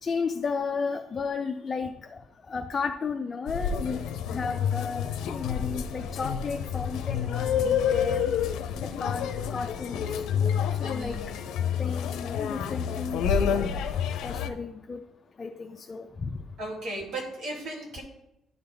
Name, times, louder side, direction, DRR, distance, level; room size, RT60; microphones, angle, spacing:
voice 1, 0.0-2.2 2.5-4.0 4.3-8.2 8.8-10.2 10.8-11.2 11.8-13.8 14.2-15.0 15.4-16.4, left 5 dB, 30° left, 4 dB, 0.4 m, -33 dB
sound 1, 3.5-14.5, left 8 dB, 90° left, 0.5 m, -29 dB
voice 2, 10.8-11.2 16.6-18.0, right 2 dB, 65° right, -4 dB, 2.6 m, -36 dB
11.0 x 3.9 x 3.4 m, 0.84 s
cardioid pair, 145°, 0 cm